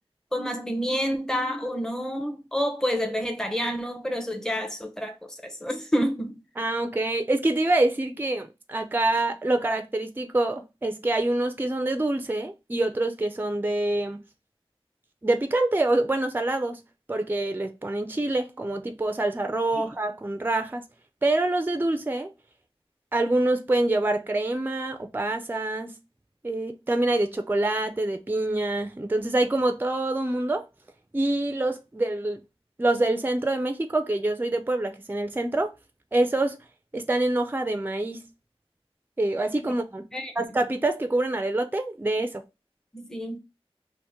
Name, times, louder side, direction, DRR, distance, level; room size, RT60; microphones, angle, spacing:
voice 1, 0.3-6.4 19.8-19.9 40.1-40.4 42.9-43.4, equal, 5° left, 0.7 m, -29 dB
voice 2, 6.6-14.2 15.2-16.8 17.1-20.8 21.2-22.3 23.1-25.9 26.4-30.7 31.1-32.4 32.8-35.7 36.1-36.6 36.9-38.2 39.2-40.0 40.4-42.4, right 2 dB, 20° right, 0.4 m, -26 dB
2.9 x 2.5 x 3.5 m
wide cardioid pair, 45°, 10 cm